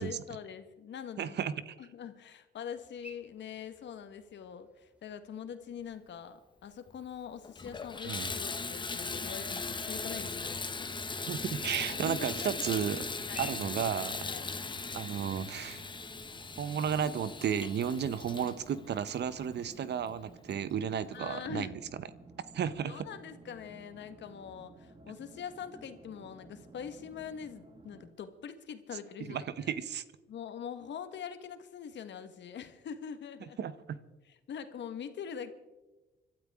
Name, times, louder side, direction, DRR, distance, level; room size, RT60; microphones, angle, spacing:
voice 1, 0.0-10.6 11.9-12.8 13.3-13.5 14.2-14.5 21.1-21.7 22.9-29.7 30.3-33.6 34.2-35.5, left 8 dB, 65° left, 9 dB, 1.4 m, -43 dB
voice 2, 1.2-1.7 8.1-8.3 11.3-13.0 13.4-14.3 14.9-15.8 16.6-21.8 22.5-23.1 29.3-30.0 33.6-34.0, right 8 dB, 60° right, 15 dB, 0.9 m, -33 dB
sound 1, 2.7-16.9, left 2 dB, 5° right, 2.3 m, -57 dB
Water tap faucet / Bathtub (filling or washing), 6.9-7.0 7.4-19.8 20.5-20.6 21.1-21.2, left 4 dB, 25° left, 1.0 m, -39 dB
sound 2, 11.4-28.1, right 2 dB, 20° right, 1.7 m, -54 dB
25.0 x 12.5 x 3.6 m, 1.1 s
cardioid pair, 90°, 20 cm